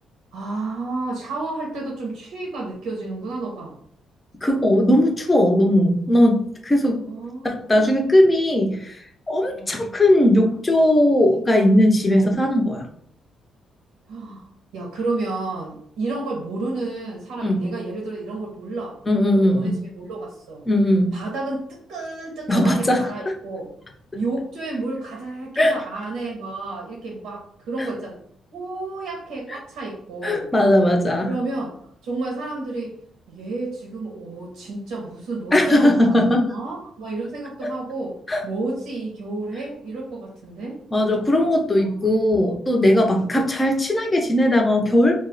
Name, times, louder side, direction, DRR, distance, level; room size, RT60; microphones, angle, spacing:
voice 1, 0.3-3.8 7.0-8.1 9.5-9.8 12.1-12.4 14.1-14.4 14.7-19.0 19.3-20.6 21.1-23.7 24.1-28.2 28.5-30.5 31.3-31.7 32.0-33.0 33.3-38.2 38.4-40.8 41.8-42.1 43.0-43.3, right 2 dB, 90° right, -1 dB, 0.7 m, -31 dB
voice 2, 4.4-7.0 7.4-9.0 9.3-12.8 17.4-17.6 19.1-19.7 20.7-21.1 22.5-23.3 25.6-25.8 27.8-27.9 29.5-29.6 30.2-31.3 35.5-36.5 37.6-37.7 38.3-38.4 40.9-45.1, left 1 dB, 20° left, 3 dB, 0.5 m, -18 dB
2.3 x 2.0 x 3.8 m, 0.65 s
cardioid pair, 90°, 0 cm